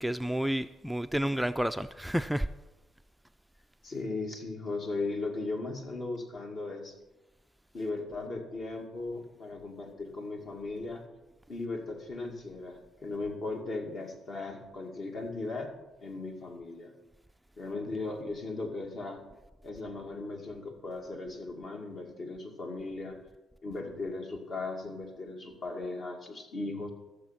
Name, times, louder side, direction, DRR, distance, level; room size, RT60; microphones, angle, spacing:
voice 1, 0.0-2.5, equal, 5° right, 10 dB, 0.3 m, -30 dB
voice 2, 3.8-7.0 7.7-11.0 11.5-15.7 16.0-16.9 17.6-19.2 19.6-23.2 23.6-26.9, left 3 dB, 55° left, 2 dB, 2.2 m, -37 dB
14.0 x 7.0 x 5.9 m, 1.1 s
cardioid pair, 90°, 0 cm